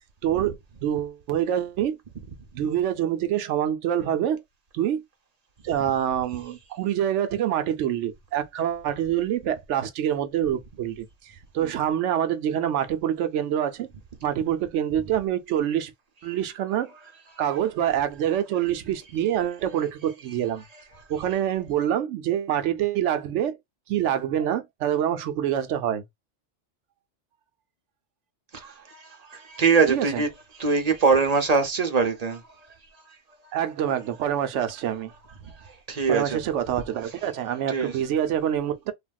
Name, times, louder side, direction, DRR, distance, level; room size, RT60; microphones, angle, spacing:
voice 1, 0.2-0.5 0.8-2.0 2.5-4.4 4.7-5.0 5.6-13.9 14.2-15.9 16.2-16.9 17.4-20.6 21.1-23.6 23.9-26.0 29.9-30.2 33.5-35.1 36.1-38.9, right 10 dB, 75° right, 0.9 m, -26 dB
voice 2, 28.5-30.3 30.5-33.2 33.4-33.5 35.4-36.4 37.7-38.0, right 5 dB, 40° right, 0.7 m, -24 dB
3.3 x 2.3 x 2.3 m
omnidirectional pair, 1.3 m